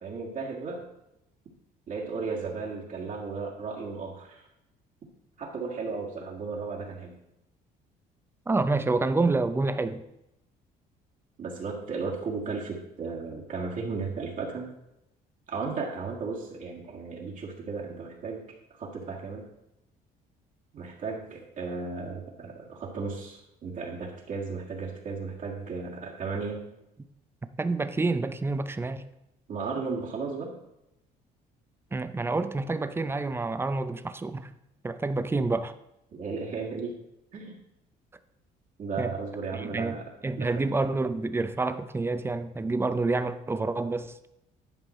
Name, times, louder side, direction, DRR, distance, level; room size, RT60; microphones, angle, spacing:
voice 1, 0.0-0.9 1.9-4.5 5.4-7.2 11.4-14.7 15.5-18.4 18.7-19.5 20.7-26.6 29.5-30.6 36.1-36.9 37.3-37.6 38.8-40.1 40.4-40.5, right 4 dB, 50° right, -3 dB, 1.8 m, -35 dB
voice 2, 8.5-10.0 27.6-29.0 31.9-34.5 34.8-35.7 39.0-39.1 39.5-44.3, right 3 dB, 15° right, 11 dB, 0.6 m, -28 dB
11.0 x 5.1 x 4.3 m, 0.86 s
cardioid pair, 110°, 17 cm